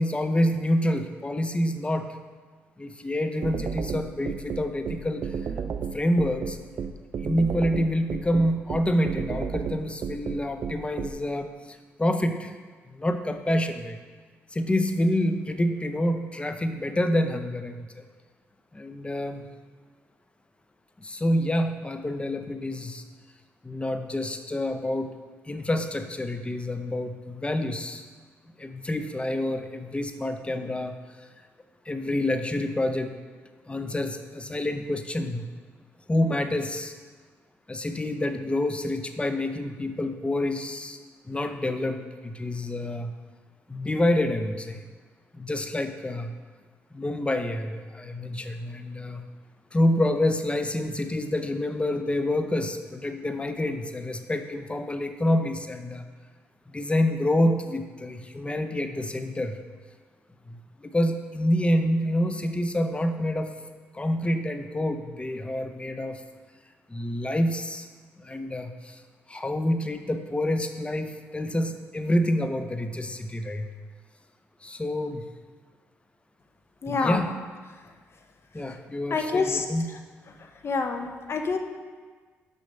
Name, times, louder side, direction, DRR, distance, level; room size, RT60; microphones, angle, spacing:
voice 1, 0.0-2.2 2.8-5.4 5.9-6.6 7.2-12.5 12.9-14.0 14.5-18.0 18.7-19.5 21.0-23.0 23.6-25.1 25.5-28.0 28.6-31.0 31.9-33.1 33.7-35.4 36.1-36.9 37.7-41.0 41.2-43.1 43.7-44.8 45.3-46.3 46.9-49.2 49.7-56.0 56.7-59.6 60.5-63.5 63.9-66.2 66.9-67.9 68.2-69.0 69.3-73.7 74.6-75.3 76.9-77.3 78.5-79.9, left 1 dB, 20° left, 7 dB, 0.7 m, -27 dB
sound 1, 3.4-11.1, right 6 dB, 55° right, 0.5 m, -31 dB
voice 2, 76.8-77.2 79.1-79.6 80.4-81.6, left 4 dB, 50° left, 5 dB, 0.9 m, -27 dB
6.2 x 5.6 x 5.3 m, 1.5 s
supercardioid pair, 55°, 6 cm